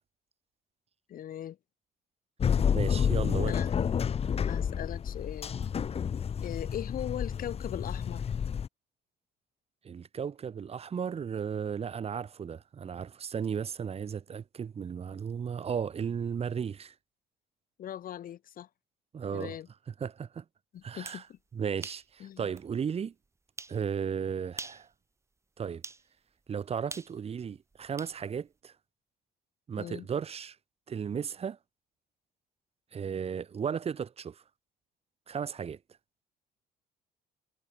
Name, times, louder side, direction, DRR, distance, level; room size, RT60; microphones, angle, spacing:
voice 1, 1.1-1.6 3.5-3.7 4.5-5.6 6.4-8.2 17.8-18.7 19.3-19.7 20.7-21.4 22.2-22.5 29.8-30.1, left 11 dB, 55° left, 2.6 m, -39 dB
sound 1, 2.4-8.7, left 7 dB, 35° left, 1.1 m, -30 dB
voice 2, 2.7-3.6 9.8-16.9 19.1-19.6 20.0-20.4 20.8-21.2 21.5-23.1 23.7-24.9 25.6-25.8 26.5-28.7 29.7-30.6 30.9-31.6 32.9-34.4 35.3-35.8, right 7 dB, 35° right, 1.8 m, -35 dB
sound 2, 20.8-21.3 21.8-22.1 22.6-22.7 23.6-23.8 24.5-24.9 25.8-26.0 26.9-28.2, right 3 dB, 15° right, 1.2 m, -43 dB
cardioid pair, 110°, 17 cm